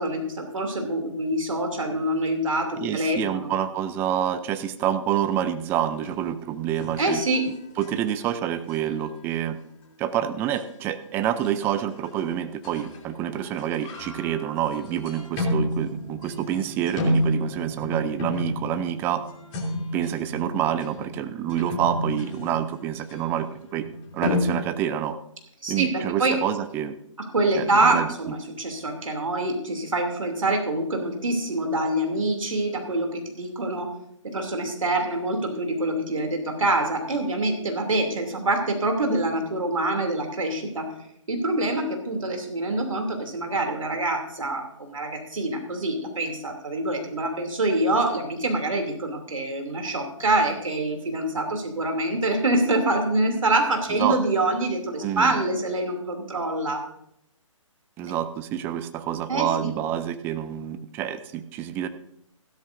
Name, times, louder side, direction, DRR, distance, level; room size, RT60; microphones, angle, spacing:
voice 1, 0.0-3.5 7.0-7.4 25.6-26.3 27.3-33.9 34.2-40.9 41.3-56.8 59.3-59.7, right 2 dB, 75° right, 4 dB, 2.8 m, -25 dB
voice 2, 2.8-7.2 7.8-9.6 10.0-19.2 19.9-23.9 24.1-25.2 25.7-27.0 27.5-28.1 53.9-54.2 55.0-55.3 58.0-61.9, right 10 dB, 10° right, 12 dB, 0.5 m, -27 dB
sound 1, 6.0-6.4 6.8-8.2 8.7-8.9 10.5-10.6 11.4-12.1 12.6-13.0 13.3-24.6, left 1 dB, 25° left, 3.0 m, -31 dB
16.0 x 12.5 x 2.6 m, 0.76 s
figure-of-eight pair, 140°, 17 cm